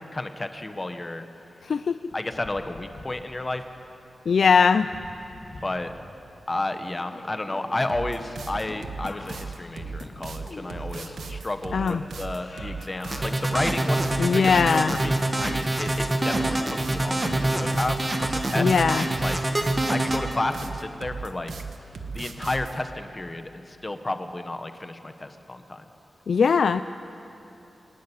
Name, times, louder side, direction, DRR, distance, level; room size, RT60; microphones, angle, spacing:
voice 1, 0.1-1.3 2.1-3.6 5.6-5.9 6.5-18.7 19.2-19.4 19.9-21.5 22.1-25.8, left 2 dB, 20° left, 8 dB, 1.1 m, -32 dB
voice 2, 1.6-2.1 4.3-4.9 11.7-12.0 14.2-15.0 18.5-19.1 26.3-26.8, left 6 dB, 70° left, 12 dB, 0.4 m, -20 dB
sound 1, 2.1-3.6 4.8-6.2 6.5-11.5 11.8-13.4 13.8-15.0 16.0-17.8 18.3-18.4, left 2 dB, 45° left, 2.5 m, -44 dB
sound 2, 7.9-22.8, right 4 dB, 85° right, 1.3 m, -36 dB
sound 3, 13.1-20.2, right 1 dB, 20° right, 1.6 m, -25 dB
25.5 x 11.5 x 9.9 m, 2.8 s
wide cardioid pair, 160°, 0 cm